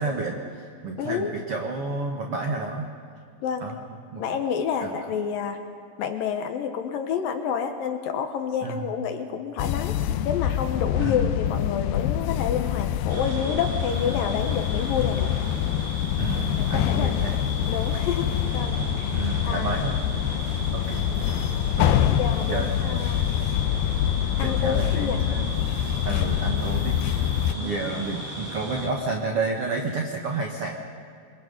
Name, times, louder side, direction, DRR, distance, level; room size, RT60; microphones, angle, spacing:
voice 1, 0.0-2.9 3.6-3.8 4.1-4.2 4.8-5.0 8.6-8.9 11.0-11.3 16.2-17.4 19.1-19.9 20.7-21.1 21.8-23.0 24.4-25.5 26.0-30.8, right 3 dB, 80° right, 2 dB, 1.3 m, -31 dB
voice 2, 1.0-1.3 3.4-3.7 4.2-5.6 6.0-10.0 10.2-15.3 16.6-17.2 17.7-19.7 20.5-20.7 21.9-23.3 24.4-25.2 27.6-27.7, left 7 dB, 70° left, 6 dB, 2.4 m, -29 dB
sound 1, 9.6-27.5, left 11 dB, 90° left, 2.1 m, -25 dB
sound 2, 13.1-28.9, left 1 dB, 25° right, 3.4 m, -35 dB
28.0 x 23.0 x 5.3 m, 2.3 s
omnidirectional pair, 5.0 m